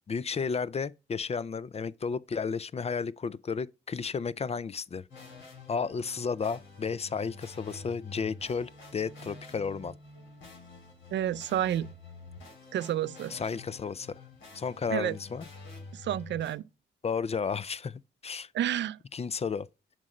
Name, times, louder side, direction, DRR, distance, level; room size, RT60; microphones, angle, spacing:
voice 1, 0.1-5.0 5.7-9.9 13.3-14.2 14.5-15.4 17.0-18.5 19.1-19.7, left 5 dB, 35° left, 0.4 m, -33 dB
sound 1, 5.1-16.5, left 3 dB, 75° left, 2.4 m, -48 dB
voice 2, 11.1-11.9 12.7-13.3 14.9-15.1 15.9-16.6 18.5-19.0, right 11 dB, 70° right, 0.4 m, -30 dB
7.4 x 3.2 x 5.2 m
cardioid pair, 60°, 19 cm